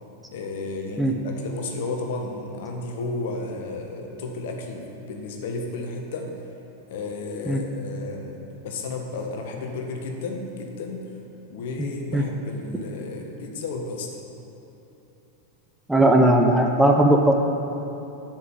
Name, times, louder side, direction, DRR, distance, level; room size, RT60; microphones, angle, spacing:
voice 1, 0.3-6.3 6.9-8.4 8.6-11.0 11.5-14.1, left 3 dB, 55° left, 2 dB, 1.6 m, -33 dB
voice 2, 15.9-17.3, right 1 dB, 5° right, 1 dB, 0.9 m, -18 dB
8.2 x 7.8 x 8.9 m, 3.0 s
figure-of-eight pair, 90°, 0 cm